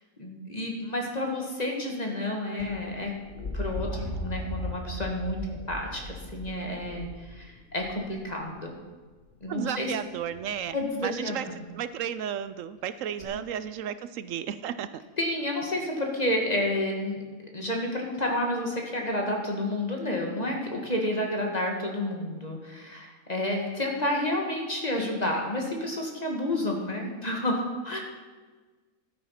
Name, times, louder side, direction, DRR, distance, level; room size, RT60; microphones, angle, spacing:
voice 1, 0.2-3.1 3.5-8.7 9.4-9.9 10.7-11.6 15.2-17.2 17.5-28.0, left 1 dB, 30° left, 1 dB, 1.9 m, -30 dB
sound 1, 2.6-8.5 10.1-10.6 13.2-13.3, left 1 dB, 55° left, 3.1 m, -37 dB
voice 2, 9.5-10.8 11.0-11.5 11.7-15.0, right 9 dB, 70° right, 13 dB, 0.9 m, -33 dB
12.0 x 9.0 x 5.8 m, 1.3 s
omnidirectional pair, 1.5 m